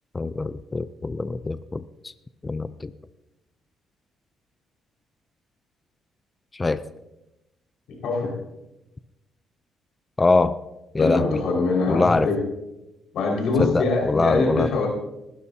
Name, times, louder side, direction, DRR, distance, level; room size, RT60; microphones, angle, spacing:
voice 1, 0.1-2.1 2.4-2.9 6.5-6.8 10.2-10.6 10.9-11.4 11.9-12.3 13.6-14.8, left 3 dB, 25° left, 14 dB, 0.5 m, -23 dB
voice 2, 11.0-12.4 13.1-14.9, left 3 dB, 80° left, -1 dB, 5.0 m, -23 dB
20.0 x 12.0 x 2.8 m, 0.94 s
cardioid pair, 90°, 0 cm